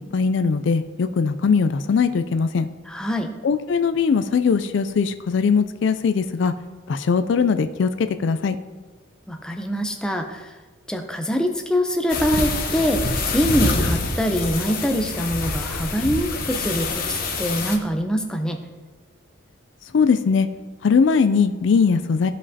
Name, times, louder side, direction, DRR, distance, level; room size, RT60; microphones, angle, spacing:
voice 1, 0.0-2.7 3.4-6.5 6.9-8.6 19.9-20.5 20.8-22.3, left 5 dB, 60° left, 10 dB, 0.4 m, -20 dB
voice 2, 2.9-3.3 9.3-10.5 10.9-13.0 13.3-18.6, equal, 5° left, 3 dB, 0.5 m, -24 dB
sound 1, 12.1-17.8, left 3 dB, 45° left, 0.9 m, -26 dB
14.5 x 5.1 x 2.8 m, 1.3 s
head